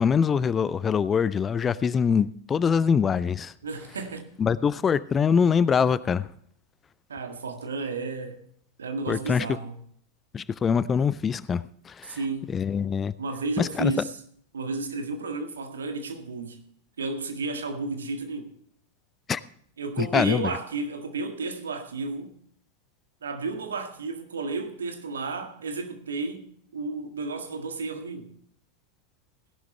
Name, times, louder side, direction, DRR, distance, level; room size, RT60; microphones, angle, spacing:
voice 1, 0.0-3.5 4.4-6.3 9.1-9.5 10.3-12.2 12.5-13.1 13.6-13.9 19.3-19.4 20.0-20.6, left 6 dB, 20° left, 0.5 m, -24 dB
voice 2, 3.6-4.3 7.1-8.4 8.8-9.7 12.1-12.5 13.2-14.1 14.5-16.6 17.0-18.5 19.8-22.3 23.2-28.3, right 3 dB, 70° right, 1.8 m, -32 dB
17.5 x 11.0 x 3.2 m
figure-of-eight pair, 90°, 0 cm